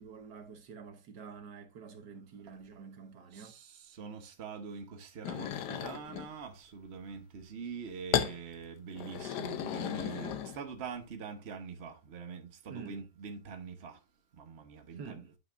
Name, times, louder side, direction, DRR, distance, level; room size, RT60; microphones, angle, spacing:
voice 1, 0.0-3.5 12.7-13.0 14.9-15.3, right 6 dB, 70° right, 1.7 m, -48 dB
voice 2, 3.3-14.0 14.3-15.2, right 6 dB, 40° right, 1.2 m, -44 dB
sound 1, 5.2-6.3 8.1-8.4 8.9-10.8, left 9 dB, 75° left, 1.3 m, -34 dB
9.9 x 5.7 x 2.6 m
omnidirectional pair, 1.9 m